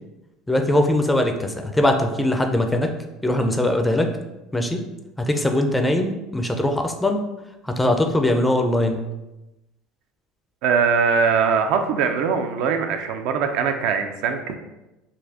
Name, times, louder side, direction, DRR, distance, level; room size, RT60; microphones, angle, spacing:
voice 1, 0.5-2.9 3.2-4.1 4.5-4.8 5.2-7.2 7.6-9.0, left 1 dB, 10° left, 5 dB, 0.4 m, -21 dB
voice 2, 10.6-14.6, right 6 dB, 70° right, 6 dB, 0.4 m, -21 dB
4.0 x 2.6 x 2.8 m, 0.98 s
cardioid pair, 125°, 0 cm